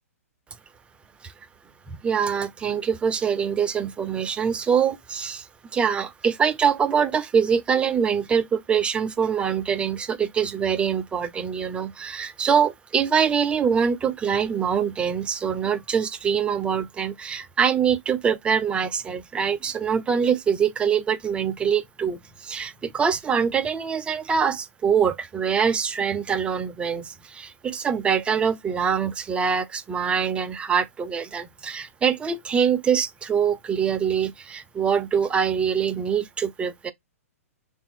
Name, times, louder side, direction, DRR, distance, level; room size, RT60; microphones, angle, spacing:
voice 1, 1.9-5.5 5.7-36.9, right 7 dB, 15° right, 0.4 m, -24 dB
3.4 x 2.5 x 4.3 m
hypercardioid pair, 130°, 8 cm